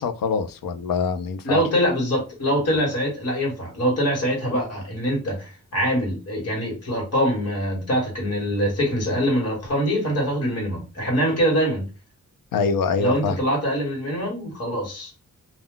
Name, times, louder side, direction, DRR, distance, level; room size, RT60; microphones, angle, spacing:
voice 1, 0.0-1.6 12.5-13.4, left 5 dB, 85° left, 9 dB, 0.5 m, -24 dB
voice 2, 1.4-11.9 13.0-15.1, equal, 50° left, -2 dB, 1.3 m, -24 dB
2.3 x 2.1 x 3.6 m, 0.31 s
wide cardioid pair, 155°, 33 cm